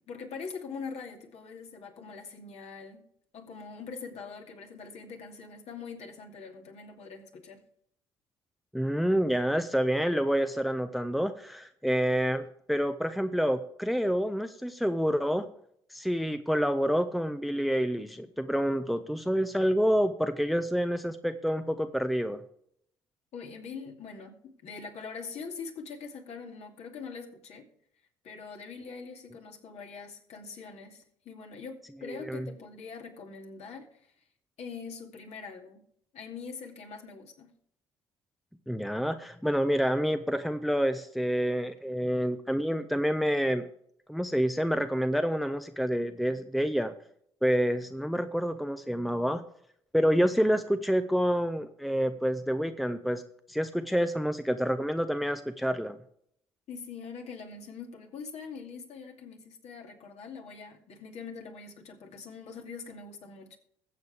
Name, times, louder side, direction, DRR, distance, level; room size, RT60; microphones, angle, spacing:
voice 1, 0.1-3.1 3.3-7.6 23.3-27.7 28.2-34.0 34.6-35.8 36.1-37.5 56.7-63.6, left 5 dB, 55° left, 2.6 m, -43 dB
voice 2, 8.7-15.5 15.9-22.4 32.1-32.5 38.7-43.7 44.1-46.9 47.4-49.4 49.9-53.2 53.5-56.0, equal, ahead, 0.9 m, -28 dB
21.0 x 7.9 x 3.5 m
hypercardioid pair, 50°, 13 cm